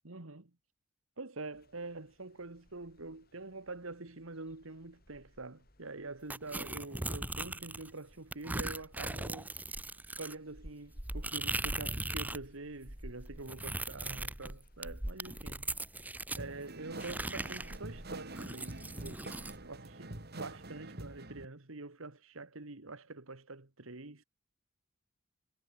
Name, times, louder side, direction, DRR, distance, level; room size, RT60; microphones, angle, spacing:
voice 1, 0.0-0.5 1.2-9.5 10.2-15.7 16.4-19.3 19.5-24.2, right 3 dB, 80° right, 1.8 m, -46 dB
sound 1, 1.5-18.9, left 1 dB, 45° left, 5.6 m, -68 dB
sound 2, 6.3-7.9 8.3-12.5 12.7-16.4 17.0-19.6, right 2 dB, 10° right, 0.7 m, -39 dB
sound 3, 16.4-21.5, right 2 dB, 50° right, 2.9 m, -46 dB
head